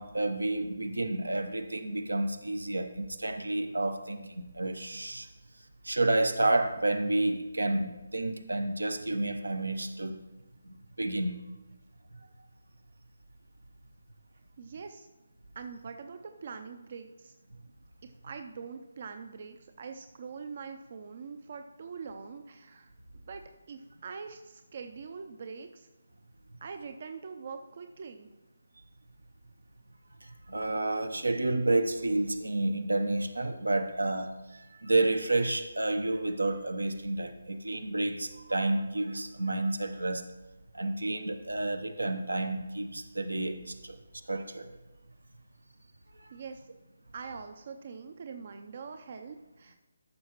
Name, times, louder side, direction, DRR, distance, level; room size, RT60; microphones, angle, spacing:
voice 1, 0.0-5.3 5.8-10.2 10.6-11.4 30.2-40.2 40.7-44.0 44.3-44.7 46.2-46.3, right 2 dB, 80° right, 8 dB, 0.8 m, -30 dB
voice 2, 14.6-15.1 15.6-17.3 18.0-23.4 23.7-25.9 26.6-28.3 46.3-46.6 47.1-49.7, right 5 dB, 45° right, 7 dB, 0.5 m, -43 dB
14.0 x 6.3 x 3.0 m, 1.1 s
figure-of-eight pair, 150°, 0 cm